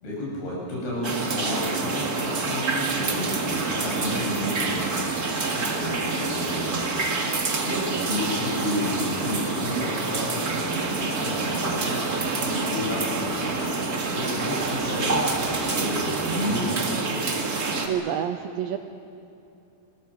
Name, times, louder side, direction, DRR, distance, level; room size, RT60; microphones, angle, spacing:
voice 1, 0.0-17.0, left 1 dB, 65° left, -5 dB, 9.3 m, -31 dB
sound 1, 1.0-17.9, right 3 dB, 65° right, 0.9 m, -27 dB
voice 2, 7.6-8.1 17.9-18.8, right 9 dB, 90° right, 7 dB, 2.1 m, -29 dB
29.0 x 21.0 x 7.2 m, 2.7 s
omnidirectional pair, 5.1 m